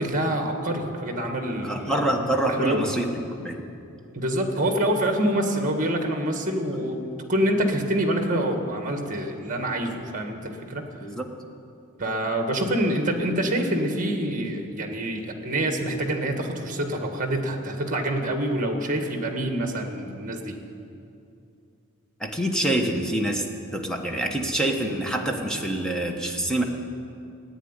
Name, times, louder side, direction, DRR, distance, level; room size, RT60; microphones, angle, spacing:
voice 1, 0.0-2.1 2.5-2.9 4.1-7.0 7.3-10.9 12.0-20.6, right 1 dB, 35° right, 4 dB, 1.7 m, -26 dB
voice 2, 1.6-3.1 3.4-3.5 6.7-6.8 11.0-11.3 22.2-23.4 23.7-26.6, right 1 dB, 5° left, 2 dB, 1.1 m, -26 dB
15.0 x 9.1 x 9.8 m, 2.6 s
head